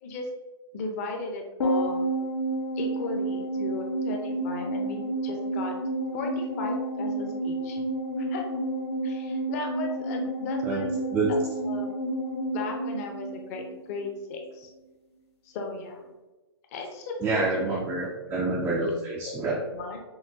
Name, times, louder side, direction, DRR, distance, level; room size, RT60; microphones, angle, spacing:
voice 1, 0.7-2.1 2.8-5.7 6.1-7.8 8.2-8.6 9.0-10.9 11.6-11.9 12.5-14.7 15.4-16.1 16.7-17.8 18.3-18.4 19.7-20.0, left 3 dB, 35° left, 2 dB, 0.7 m, -36 dB
sound 1, 1.6-14.1 14.4-14.5, right 1 dB, 80° left, 1.1 m, -30 dB
voice 2, 17.2-19.6, right 3 dB, 10° right, -2 dB, 0.3 m, -27 dB
5.6 x 2.5 x 2.7 m, 1.1 s
hypercardioid pair, 150°, 14 cm